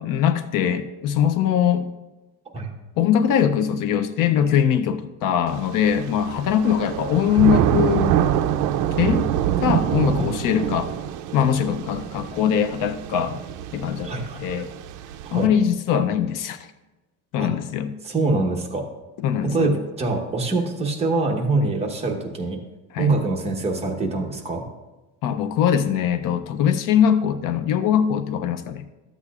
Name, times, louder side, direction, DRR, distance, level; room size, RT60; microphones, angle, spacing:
voice 1, 0.0-1.9 3.0-8.2 9.0-9.3 9.6-10.9 11.3-13.4 13.7-14.7 15.3-16.6 17.3-17.9 19.2-19.7 22.9-23.1 25.2-28.8, left 8 dB, 60° left, 11 dB, 0.6 m, -21 dB
Thunder / Rain, 5.5-15.4, right 10 dB, 55° right, 0.5 m, -25 dB
voice 2, 14.0-14.6 15.2-15.5 17.4-17.5 18.0-18.8 19.4-22.6 23.0-24.6, right 3 dB, 15° right, 0 dB, 1.0 m, -24 dB
13.0 x 8.1 x 2.4 m, 1.1 s
cardioid pair, 165°, 36 cm